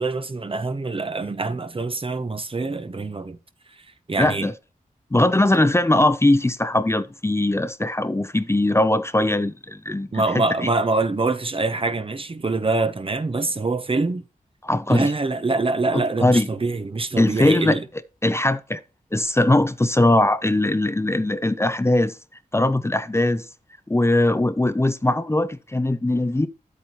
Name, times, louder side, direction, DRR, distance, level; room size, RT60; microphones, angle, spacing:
voice 1, 0.0-3.4 4.1-4.5 10.1-14.2 14.9-17.8, right 3 dB, 40° right, 0.9 m, -24 dB
voice 2, 4.2-4.5 5.1-10.7 14.6-15.1 15.9-16.5 17.2-17.8 18.2-18.8 19.1-22.2 22.5-23.5 23.9-26.5, left 1 dB, 20° left, 0.7 m, -20 dB
9.2 x 8.4 x 3.0 m
cardioid pair, 55°, 14 cm